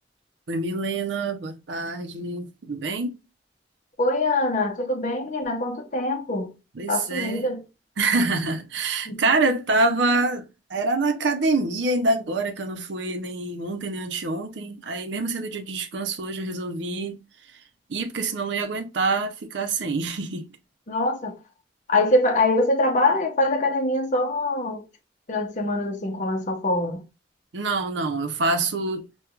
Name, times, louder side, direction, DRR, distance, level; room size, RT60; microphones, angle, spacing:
voice 1, 0.5-3.2 6.7-7.5 8.0-17.2 17.9-20.5 27.5-29.1, right 3 dB, 90° right, 0.6 m, -26 dB
voice 2, 4.0-6.5 6.9-7.6 9.1-9.2 20.9-21.4 21.9-24.8 25.3-27.0, left 2 dB, 45° left, 0.7 m, -23 dB
4.4 x 2.3 x 2.3 m
head